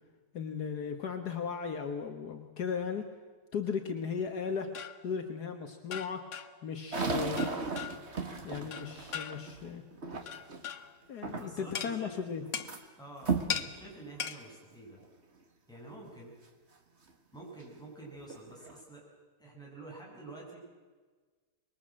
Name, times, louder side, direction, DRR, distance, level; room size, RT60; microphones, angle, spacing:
voice 1, 0.3-3.1 3.5-4.7 5.0-6.2 6.6-7.5 8.4-9.8 11.1-12.4, left 6 dB, 65° left, 6 dB, 1.8 m, -36 dB
sound 1, 4.4-5.1 5.9-6.6 7.4-8.1 8.7-9.6 10.3-11.0 11.7-11.9 12.5-12.8 13.5-13.7 14.2-14.4, left 8 dB, 50° left, 1.2 m, -39 dB
sound 2, 6.9-10.7 11.2-11.8 12.1-12.8 13.2-13.6 14.2-14.3 15.0-15.1 17.6-17.7 18.2-18.8, right 4 dB, 40° right, 2.0 m, -35 dB
voice 2, 11.3-12.1 13.0-15.0 15.7-16.3 17.3-19.0 19.4-20.6, right 2 dB, ahead, -3 dB, 7.5 m, -48 dB
25.0 x 21.5 x 7.6 m, 1.4 s
omnidirectional pair, 1.9 m